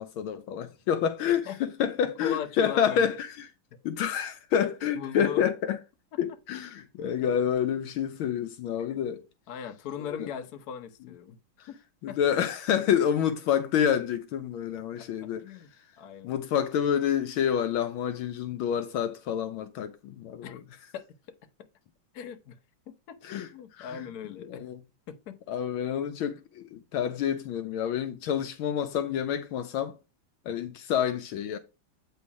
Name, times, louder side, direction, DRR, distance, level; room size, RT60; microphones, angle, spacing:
voice 1, 0.0-3.5 3.8-5.8 6.2-9.2 10.1-10.3 11.6-11.7 12.0-15.4 16.2-20.6 23.2-24.1 24.5-24.8 25.5-29.9 30.4-31.6, left 8 dB, 75° left, 1.4 m, -28 dB
voice 2, 2.2-3.1 3.7-3.8 5.0-5.4 8.9-9.0 9.5-11.4 11.7-11.8 12.1-12.2 15.0-15.7 16.0-16.3 20.4-20.6 20.9-21.1 22.1-22.6 23.1-23.2 23.5-24.7 25.1-25.4, left 8 dB, 55° left, 1.2 m, -38 dB
8.5 x 4.1 x 4.7 m
omnidirectional pair, 2.4 m